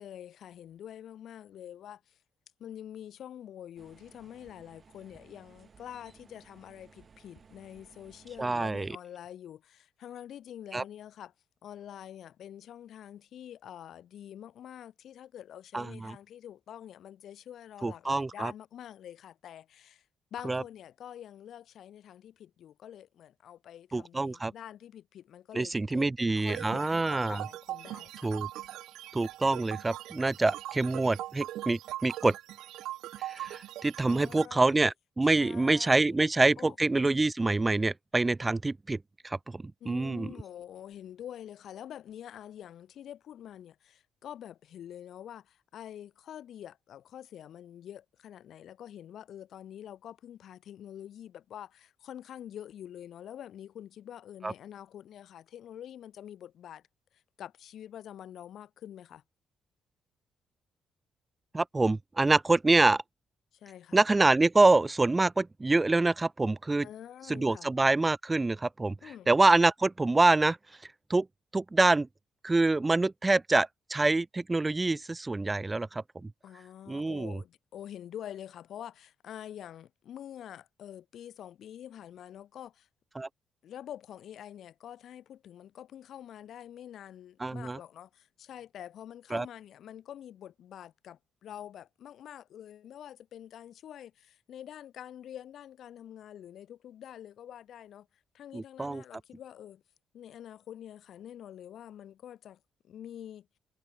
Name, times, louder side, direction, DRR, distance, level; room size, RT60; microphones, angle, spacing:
voice 1, 0.0-2.2 2.6-11.3 11.6-20.0 20.3-28.3 34.0-34.7 35.2-36.2 36.6-36.8 39.8-56.8 57.4-59.2 63.5-64.0 66.8-67.7 69.0-69.3 76.4-82.9 83.6-98.1 98.3-99.8 100.1-102.6 102.8-103.5, left 10 dB, 70° left, 2.5 m, -46 dB
sound 1, 3.8-8.9, right 5 dB, 40° right, 4.4 m, -58 dB
voice 2, 8.4-9.0 10.7-10.8 15.7-16.1 17.8-18.5 20.4-20.6 23.9-24.5 25.5-27.4 28.2-28.5 29.1-32.4 33.2-39.0 39.2-40.3 54.4-54.5 61.5-63.0 63.9-66.9 67.3-68.9 69.3-70.6 71.1-71.3 71.5-72.1 72.4-76.3 76.9-77.4 83.2-83.3 87.4-87.8 89.3-89.5 98.5-99.0, right 2 dB, 20° right, 0.9 m, -26 dB
sound 2, 26.5-34.5, right 14 dB, 85° right, 1.3 m, -41 dB
cardioid pair, 90°, 0 cm